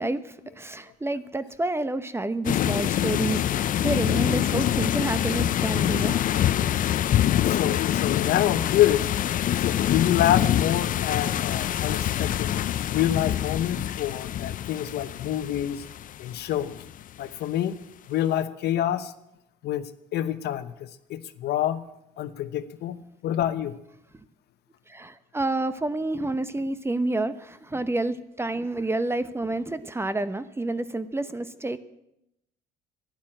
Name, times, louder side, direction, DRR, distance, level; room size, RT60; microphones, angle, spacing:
voice 1, 0.0-6.2 24.9-31.8, right 2 dB, 15° right, 13 dB, 0.9 m, -29 dB
sound 1, 2.4-17.0, left 11 dB, 50° left, 0.5 m, -25 dB
voice 2, 7.5-9.1 9.6-12.5 12.9-15.8 16.2-16.8 17.2-17.8 18.1-19.1 19.6-21.8 22.2-23.0 23.2-23.7, left 11 dB, 65° left, 11 dB, 1.0 m, -27 dB
11.5 x 11.0 x 8.9 m, 0.85 s
supercardioid pair, 80°, 18 cm